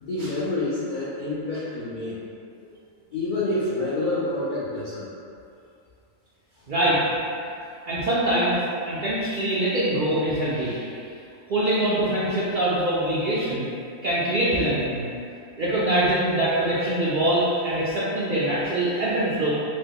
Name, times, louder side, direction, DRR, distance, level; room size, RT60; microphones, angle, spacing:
voice 1, 0.0-2.2 3.1-5.1, left 2 dB, 85° left, -9 dB, 0.4 m, -28 dB
voice 2, 6.7-7.0 7.9-8.6 8.9-10.9 11.5-13.7 14.0-15.1 15.6-19.5, right 1 dB, 80° right, -9 dB, 0.4 m, -23 dB
3.0 x 2.2 x 3.4 m, 2.5 s
omnidirectional pair, 1.5 m